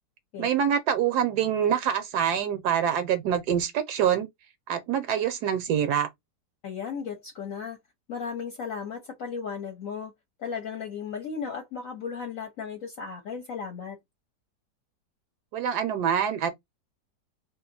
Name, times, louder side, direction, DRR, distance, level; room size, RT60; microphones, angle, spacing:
voice 1, 0.4-4.3 4.7-6.1 15.5-16.5, right 8 dB, 75° right, 1.1 m, -25 dB
voice 2, 6.6-7.8 8.1-10.1 10.4-14.0, left 6 dB, 60° left, 1.0 m, -35 dB
2.8 x 2.5 x 3.7 m
omnidirectional pair, 1.8 m